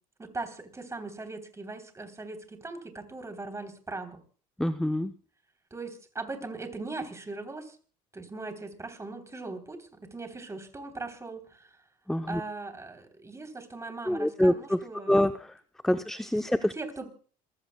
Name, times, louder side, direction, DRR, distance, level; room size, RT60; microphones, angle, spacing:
voice 1, 0.2-4.2 5.7-7.8 8.1-11.7 12.3-15.2 16.5-17.1, right 3 dB, 20° right, 6 dB, 3.4 m, -39 dB
voice 2, 4.6-5.1 12.1-12.4 14.1-14.8 15.1-15.3 15.8-16.7, left 1 dB, ahead, 9 dB, 0.6 m, -25 dB
27.0 x 15.5 x 2.2 m, 0.40 s
supercardioid pair, 95°, 17 cm